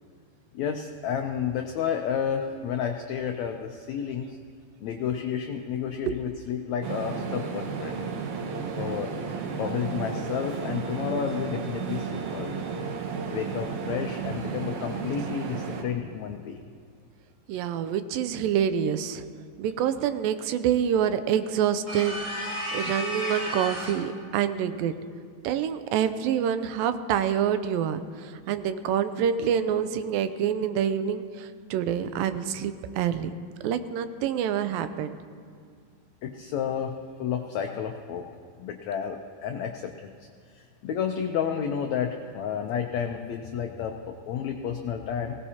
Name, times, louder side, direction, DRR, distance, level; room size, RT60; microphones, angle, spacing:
voice 1, 0.5-4.4 4.8-8.0 8.8-12.6 13.3-16.6 22.8-22.9 36.2-38.3 38.6-39.9 40.5-45.4, left 8 dB, 80° left, 4 dB, 1.6 m, -31 dB
sound 1, 6.8-15.8, right 6 dB, 65° right, 2.1 m, -33 dB
voice 2, 17.5-19.2 19.6-22.2 22.7-24.9 25.4-33.3 33.6-35.2, right 9 dB, 90° right, 10 dB, 2.4 m, -27 dB
sound 2, 21.9-24.1, equal, 35° right, 2.7 m, -33 dB
20.0 x 18.0 x 2.9 m, 2.2 s
omnidirectional pair, 4.0 m